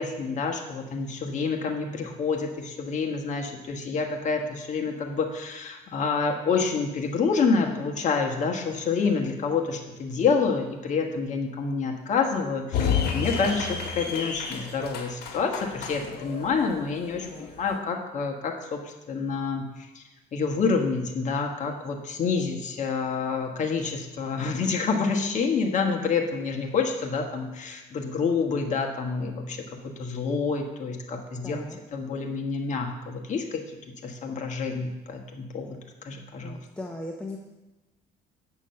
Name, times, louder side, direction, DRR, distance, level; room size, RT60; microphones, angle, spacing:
voice 1, 0.0-18.8 19.1-20.0 20.3-33.6 34.0-35.8 36.0-36.6, left 5 dB, 45° left, 3 dB, 1.3 m, -28 dB
sound 1, 12.7-17.8, left 6 dB, 70° left, 1.6 m, -31 dB
voice 2, 31.4-31.8 36.4-37.4, left 1 dB, 5° left, 1 dB, 0.8 m, -38 dB
7.6 x 6.2 x 5.7 m, 1.0 s
cardioid pair, 110°, 17 cm